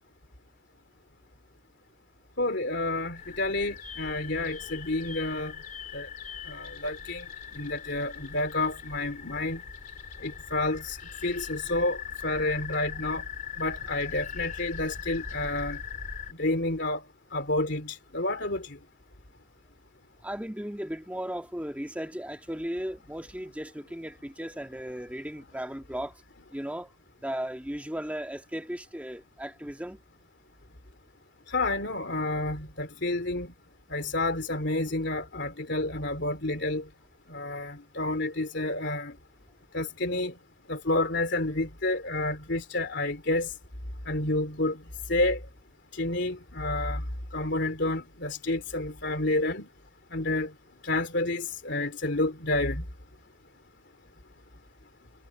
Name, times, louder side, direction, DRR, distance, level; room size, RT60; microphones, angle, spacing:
voice 1, 2.4-5.5 5.9-6.1 6.5-7.2 7.5-9.6 10.2-11.0 11.2-13.2 13.6-15.8 16.4-17.0 17.3-18.6 31.5-33.5 33.9-36.8 37.3-39.1 39.7-40.3 40.7-43.5 44.1-44.8 45.1-45.4 46.0-47.0 47.3-49.7 50.1-50.5 50.8-52.8, left 2 dB, 55° left, 3.3 m, -29 dB
sound 1, 3.2-16.3, left 7 dB, 40° left, 3.3 m, -40 dB
voice 2, 20.2-26.2 26.5-26.9 27.2-30.0, equal, 5° right, 1.7 m, -36 dB
head